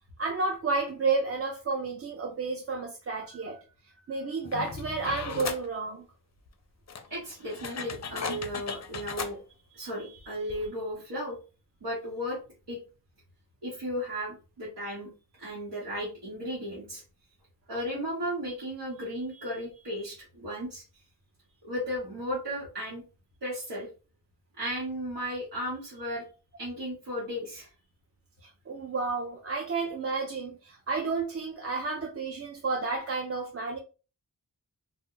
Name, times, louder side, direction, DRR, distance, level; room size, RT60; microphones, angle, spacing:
voice 1, 0.2-3.6 4.1-6.0 28.4-33.8, right 4 dB, 35° right, 0.4 m, -31 dB
sound 1, 4.4-5.7 6.5-6.6 6.9-9.3 10.2-10.3 10.5-10.7, left 5 dB, 45° left, 0.4 m, -37 dB
voice 2, 7.1-9.4 9.7-11.4 11.8-12.4 12.7-12.8 13.6-15.1 15.4-17.0 17.7-20.8 21.6-23.0 23.4-23.9 24.6-26.2 26.6-27.7, equal, 80° right, 1.0 m, -35 dB
2.2 x 2.0 x 3.7 m
wide cardioid pair, 85°, 40 cm